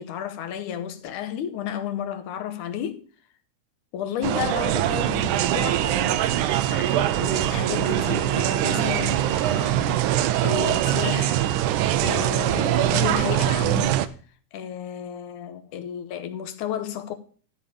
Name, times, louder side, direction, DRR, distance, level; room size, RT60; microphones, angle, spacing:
voice 1, 0.0-3.0 3.9-11.4 12.0-14.0 14.5-17.1, left 9 dB, 85° left, 2.6 m, -32 dB
sound 1, 4.2-14.1, right 12 dB, 80° right, 2.1 m, -23 dB
13.0 x 5.2 x 7.0 m
omnidirectional pair, 3.5 m